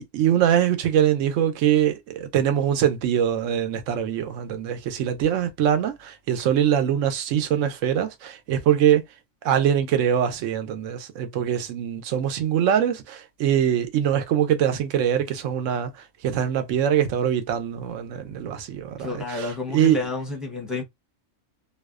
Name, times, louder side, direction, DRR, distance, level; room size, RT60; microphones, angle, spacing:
voice 1, 0.0-9.0 9.4-20.0, right 9 dB, 85° right, 0.9 m, -23 dB
voice 2, 19.0-20.8, left 3 dB, ahead, 0.6 m, -30 dB
2.6 x 2.1 x 2.3 m
omnidirectional pair, 1.3 m